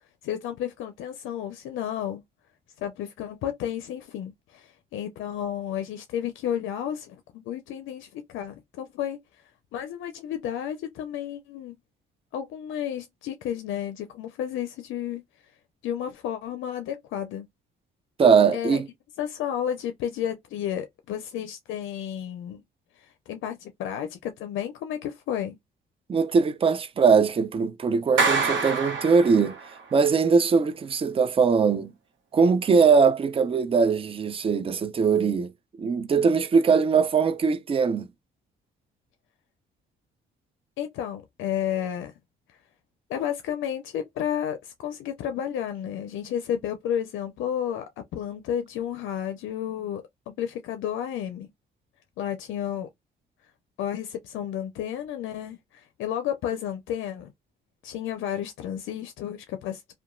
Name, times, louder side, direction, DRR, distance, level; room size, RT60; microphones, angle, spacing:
voice 1, 0.2-2.2 2.8-9.2 9.7-11.7 12.3-15.2 15.8-17.5 18.5-18.8 19.2-22.6 23.0-25.6 40.8-42.1 43.1-50.0 50.4-51.5 52.2-52.9 53.8-57.3 57.8-59.9, left 10 dB, 80° left, 0.4 m, -32 dB
voice 2, 18.2-18.8 26.1-29.6 29.9-31.9 32.3-35.5 35.8-38.1, right 5 dB, 30° right, 0.4 m, -21 dB
Clapping, 28.2-29.8, right 4 dB, 75° right, 0.9 m, -26 dB
2.7 x 2.2 x 2.5 m
cardioid pair, 90°, 20 cm